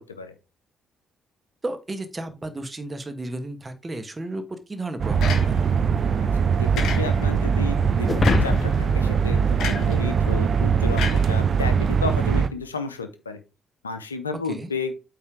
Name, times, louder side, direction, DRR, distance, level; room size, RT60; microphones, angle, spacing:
voice 1, 1.6-5.2 5.5-5.6 14.5-14.7, right 2 dB, 25° right, 9 dB, 1.4 m, -33 dB
sound 1, 5.0-12.5, right 6 dB, 50° right, 0.6 m, -21 dB
sound 2, 5.2-5.9 6.8-7.4 8.2-8.7 9.6-10.0 11.0-11.9, left 5 dB, 60° left, 1.4 m, -31 dB
voice 2, 7.0-13.4 13.8-14.9, left 4 dB, 85° left, 9 dB, 0.6 m, -32 dB
sound 3, 8.1-10.6, left 4 dB, 35° left, 0.5 m, -26 dB
8.5 x 3.4 x 4.9 m, 0.29 s
figure-of-eight pair, 45°, 0 cm